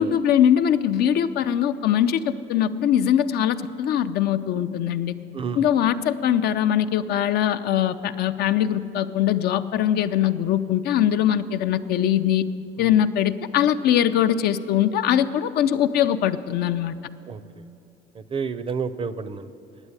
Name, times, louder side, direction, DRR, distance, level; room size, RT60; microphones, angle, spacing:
voice 1, 0.0-5.1 5.6-12.5 12.8-17.0, left 10 dB, 70° left, 11 dB, 0.5 m, -22 dB
voice 2, 18.2-19.5, right 5 dB, 30° right, 14 dB, 0.5 m, -30 dB
9.8 x 8.1 x 9.6 m, 2.6 s
cardioid pair, 110°, 17 cm